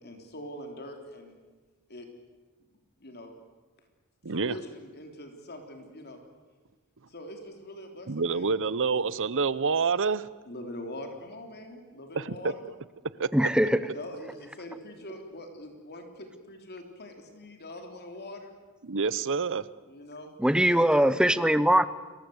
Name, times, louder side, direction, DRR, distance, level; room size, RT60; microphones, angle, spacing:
voice 1, 0.0-1.4 1.9-2.1 3.0-3.3 4.3-6.2 7.1-8.7 10.5-12.7 13.8-18.5 19.9-20.3 20.7-21.0, left 1 dB, 50° left, 3.7 m, -43 dB
voice 2, 4.2-4.5 8.1-10.3 12.1-12.5 13.2-13.3 18.8-19.6, right 5 dB, 60° right, 0.9 m, -27 dB
voice 3, 13.3-13.8 20.4-21.8, right 1 dB, 5° right, 0.9 m, -21 dB
30.0 x 22.5 x 8.1 m
head